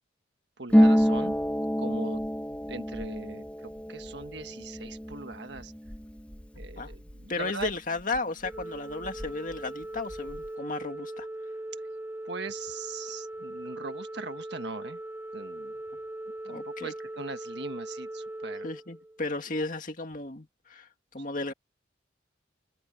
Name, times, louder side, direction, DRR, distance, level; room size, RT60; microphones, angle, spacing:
voice 1, 0.6-1.4 1.8-2.2 2.7-5.7 6.6-7.7 12.2-15.0 15.3-15.7 16.4-18.7, right 3 dB, 65° right, 1.6 m, -40 dB
Harp, 0.7-8.2 8.4-9.6 9.8-10.5, equal, 5° left, 1.3 m, -28 dB
voice 2, 7.3-11.3 16.5-16.9 18.6-21.5, left 3 dB, 45° left, 2.1 m, -34 dB
Organ, 8.4-19.5, right 1 dB, 10° right, 0.8 m, -40 dB
head